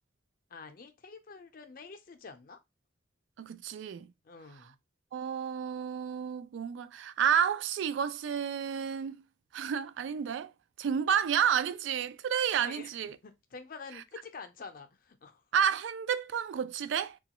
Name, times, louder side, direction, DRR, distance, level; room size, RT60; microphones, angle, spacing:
voice 1, 0.5-2.6 4.2-4.8 12.6-12.9 13.2-15.4, left 5 dB, 50° left, 0.5 m, -47 dB
voice 2, 3.4-4.1 5.1-9.2 9.5-10.5 10.8-13.2 15.5-17.2, right 8 dB, 85° right, 0.3 m, -30 dB
2.9 x 2.3 x 2.9 m
head